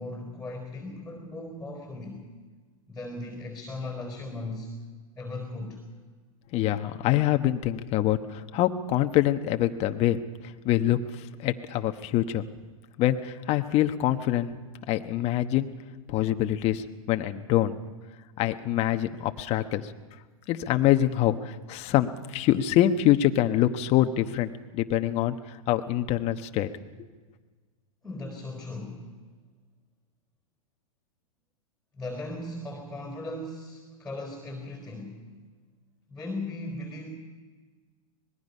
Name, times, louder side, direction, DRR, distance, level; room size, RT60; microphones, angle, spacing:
voice 1, 0.0-2.3 2.9-4.7 5.1-5.8 28.0-29.1 31.9-35.2 36.1-37.1, left 2 dB, 5° left, 3 dB, 4.0 m, -37 dB
voice 2, 6.5-10.2 10.6-11.0 11.4-12.4 13.0-14.5 14.9-15.7 16.1-17.8 18.4-19.9 20.5-26.7, left 13 dB, 35° left, 8 dB, 1.1 m, -25 dB
25.5 x 20.0 x 5.5 m, 1.4 s
hypercardioid pair, 125°, 18 cm